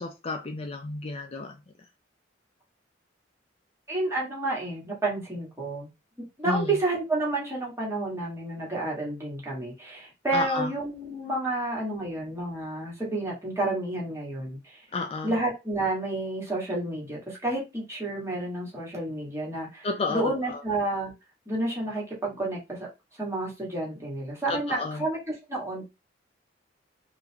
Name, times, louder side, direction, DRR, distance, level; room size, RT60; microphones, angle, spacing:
voice 1, 0.0-1.6 6.5-6.7 10.3-10.7 14.9-15.3 19.8-20.2 20.5-20.6 24.5-25.1, left 3 dB, 30° left, 0.4 m, -31 dB
voice 2, 3.9-5.9 6.4-14.8 15.2-21.1 21.4-22.9 23.2-25.8, right 2 dB, 15° right, 1.5 m, -30 dB
4.0 x 2.5 x 2.8 m
head